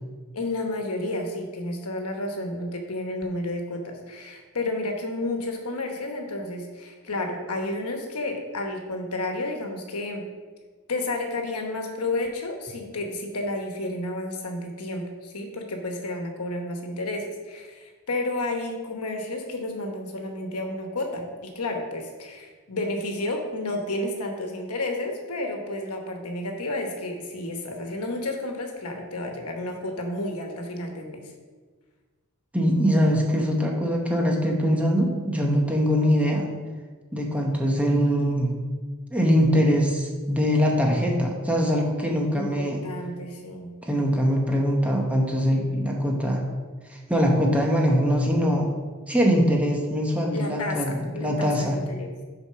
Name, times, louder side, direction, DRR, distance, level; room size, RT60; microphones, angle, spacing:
voice 1, 0.3-10.2 10.9-31.2 42.3-43.7 50.3-52.1, left 2 dB, 90° left, 3 dB, 1.1 m, -31 dB
voice 2, 32.5-36.5 37.1-38.5 39.1-42.8 43.8-46.4 47.1-48.7 49.1-51.8, equal, 5° right, 0 dB, 0.9 m, -22 dB
6.4 x 4.6 x 5.6 m, 1.4 s
head